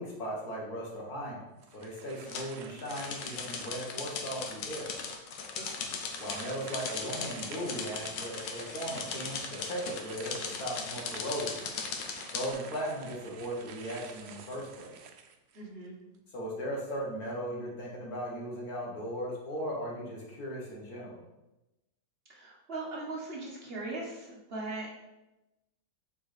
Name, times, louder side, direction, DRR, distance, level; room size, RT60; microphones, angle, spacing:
voice 1, 0.0-1.4 1.7-4.9 6.2-11.6 12.3-14.9 16.3-21.2, equal, 55° left, -2 dB, 2.0 m, -37 dB
sound 1, 1.6-4.1 4.7-4.8 6.1-15.9, right 6 dB, 85° right, 0.5 m, -49 dB
sound 2, 2.3-2.4 2.9-12.5, left 5 dB, 90° left, 1.5 m, -38 dB
voice 2, 5.5-5.9 15.5-16.0 22.3-24.9, right 2 dB, 35° right, -3 dB, 1.7 m, -39 dB
6.4 x 4.7 x 5.0 m, 0.98 s
omnidirectional pair, 1.9 m